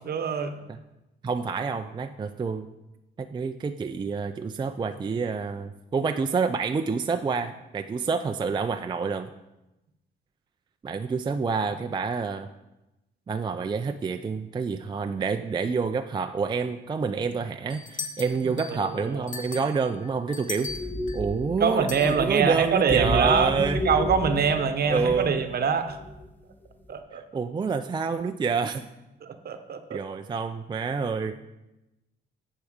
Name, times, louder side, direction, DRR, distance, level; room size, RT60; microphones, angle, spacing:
voice 1, 0.1-0.5 18.4-18.6 18.8-19.2 21.6-26.0 26.9-27.2 29.2-30.0, right 6 dB, 50° right, 8 dB, 0.9 m, -25 dB
voice 2, 1.2-2.7 3.2-9.3 10.8-12.5 13.3-20.7 21.1-23.8 24.9-25.3 27.1-28.9 29.9-31.3, right 5 dB, 25° right, 7 dB, 0.4 m, -28 dB
sound 1, 17.7-18.9 19.3-21.2 21.9-22.1, left 4 dB, 40° left, 1.2 m, -37 dB
sound 2, 20.7-26.3 26.6-27.0, left 1 dB, 10° left, 0.9 m, -32 dB
10.5 x 4.7 x 5.0 m, 0.97 s
cardioid pair, 90°, 20 cm